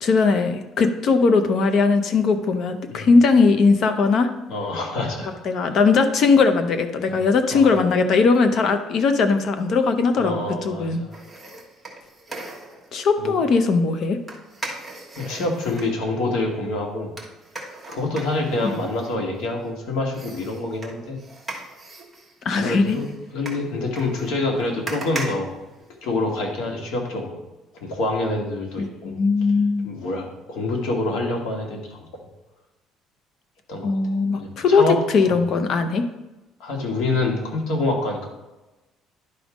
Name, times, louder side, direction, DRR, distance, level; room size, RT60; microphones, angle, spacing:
voice 1, 0.0-4.3 5.4-11.0 12.9-14.2 22.4-23.0 28.8-29.9 33.8-34.8 35.1-36.0, left 4 dB, 50° left, 8 dB, 0.7 m, -19 dB
voice 2, 4.5-5.3 7.1-7.2 7.5-7.8 10.2-11.1 13.2-13.4 15.2-17.1 17.9-21.2 22.5-23.1 23.3-25.5 26.0-27.4 27.7-29.1 29.8-32.1 33.7-33.9 34.4-35.0 35.3-35.4 36.6-38.3, left 2 dB, 75° left, 1 dB, 1.9 m, -26 dB
sound 1, 11.1-12.9 14.3-15.9 17.2-19.7 20.1-26.4 26.7-26.8, right 2 dB, 10° right, 1.3 m, -38 dB
11.0 x 3.6 x 5.0 m, 1.0 s
cardioid pair, 145°, 0 cm